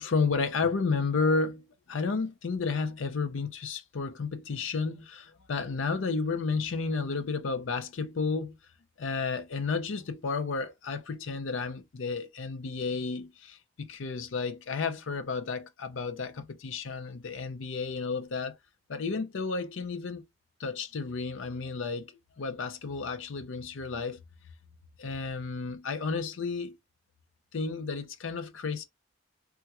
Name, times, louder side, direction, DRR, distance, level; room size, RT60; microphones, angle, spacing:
voice 1, 0.0-8.6 9.0-18.6 18.9-20.2 20.6-24.2 25.0-26.8 27.5-28.8, left 4 dB, 85° left, 0.6 m, -32 dB
3.5 x 2.3 x 2.8 m
head